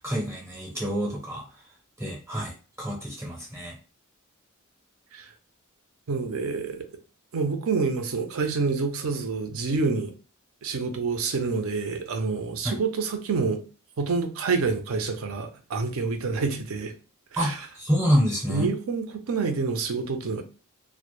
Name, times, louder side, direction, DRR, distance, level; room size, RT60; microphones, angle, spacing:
voice 1, 0.0-1.4 2.0-3.8 12.6-12.8 17.4-18.7, equal, 10° right, 0.6 m, -27 dB
voice 2, 6.1-6.9 7.3-10.1 10.6-13.6 14.0-16.9 17.3-17.6 18.5-20.4, right 4 dB, 70° right, 0.5 m, -27 dB
2.1 x 2.0 x 2.9 m
head